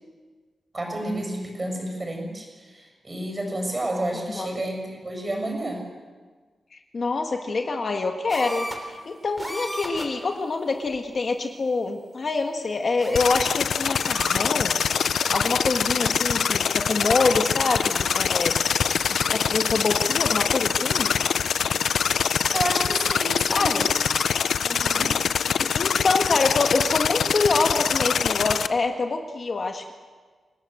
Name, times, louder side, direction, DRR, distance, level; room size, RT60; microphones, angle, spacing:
voice 1, 0.7-5.9 22.5-23.7 24.6-25.2, right 1 dB, 20° right, 2 dB, 6.9 m, -30 dB
voice 2, 6.7-14.8 15.3-18.6 19.1-21.1 23.5-23.9 25.6-29.9, left 3 dB, 40° left, 4 dB, 1.6 m, -26 dB
sound 1, 8.3-9.0 9.4-10.2 10.9-11.0 13.0-13.5 13.8-14.4 16.0-16.3 16.6-21.2 22.6-23.3 23.8-25.1, equal, ahead, 3.5 m, -40 dB
sound 2, 13.2-28.7, left 7 dB, 80° left, 0.7 m, -24 dB
sound 3, 13.5-18.3 19.5-19.6, right 4 dB, 80° right, 4.7 m, -40 dB
29.0 x 18.5 x 8.0 m, 1.5 s
wide cardioid pair, 170°, 0 cm